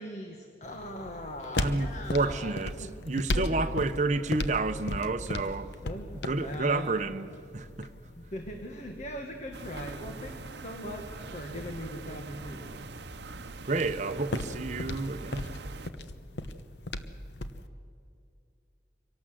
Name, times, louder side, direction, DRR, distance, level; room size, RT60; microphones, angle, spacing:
voice 1, 0.0-2.5 2.8-2.9 3.3-3.6 5.2-5.5 5.8-6.1 6.4-6.9 8.1-12.9, left 1 dB, 40° left, 1.6 m, -40 dB
sound 1, 0.6-17.7, left 1 dB, 75° left, 1.0 m, -38 dB
voice 2, 1.6-5.7 6.2-7.9 13.6-15.7, right 3 dB, 40° right, 0.8 m, -30 dB
sound 2, 9.5-15.9, right 3 dB, 70° right, 0.8 m, -43 dB
25.0 x 18.0 x 7.7 m
head